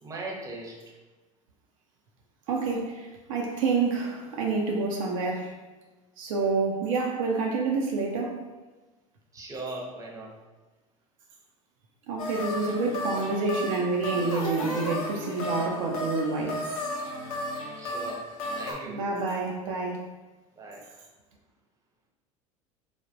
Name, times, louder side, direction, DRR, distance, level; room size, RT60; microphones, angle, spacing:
voice 1, 0.0-0.8 9.3-10.3 17.8-18.2 18.5-19.0 20.6-20.8, right 2 dB, 20° right, -1 dB, 0.7 m, -38 dB
voice 2, 2.5-5.5 6.2-8.5 12.1-16.6 18.9-20.0, right 4 dB, 70° right, 0 dB, 0.5 m, -28 dB
sound 1, 12.2-18.7, left 1 dB, 80° left, 0.6 m, -34 dB
3.3 x 2.1 x 2.5 m, 1.2 s
hypercardioid pair, 80°, 18 cm